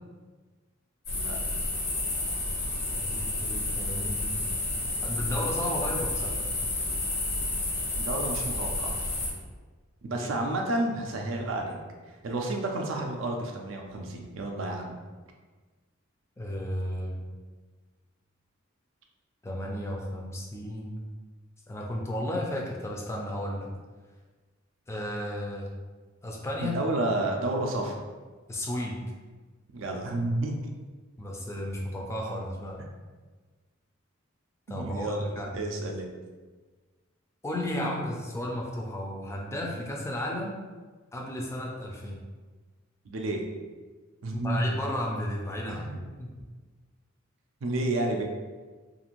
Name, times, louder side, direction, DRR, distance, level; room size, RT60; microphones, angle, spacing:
sound 1, 1.1-9.3, left 2 dB, 90° left, 1.1 m, -30 dB
voice 1, 2.9-4.4 5.0-6.4 10.1-10.3 16.4-17.2 19.4-21.0 21.7-23.7 24.9-25.7 26.2-26.8 28.5-29.0 31.2-32.8 34.7-35.6 37.4-40.6 41.1-42.3 44.3-46.3, left 1 dB, 15° left, -1 dB, 0.4 m, -34 dB
voice 2, 8.0-9.0 10.0-11.8 12.2-14.9 26.6-28.0 29.7-30.5 34.7-36.1 43.1-43.4 44.2-44.8 45.7-46.0 47.6-48.2, right 2 dB, 70° right, 2 dB, 0.4 m, -30 dB
2.5 x 2.5 x 2.9 m, 1.4 s
head